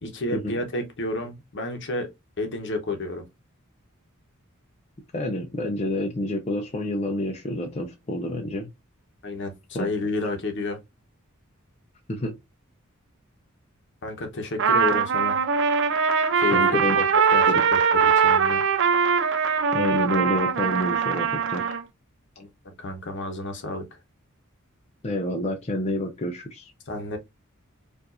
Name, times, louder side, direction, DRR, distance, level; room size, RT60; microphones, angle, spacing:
voice 1, 0.0-2.1 2.4-3.2 9.2-10.8 14.0-15.4 16.4-18.6 22.4-23.8 26.9-27.2, left 2 dB, 60° left, 1.0 m, -30 dB
voice 2, 5.1-8.7 9.7-9.9 12.1-12.4 16.5-17.0 17.5-17.6 19.7-21.7 25.0-26.7, left 1 dB, 30° left, 0.6 m, -28 dB
Trumpet, 14.6-21.8, right 6 dB, 60° right, 0.6 m, -21 dB
4.6 x 2.5 x 2.5 m
head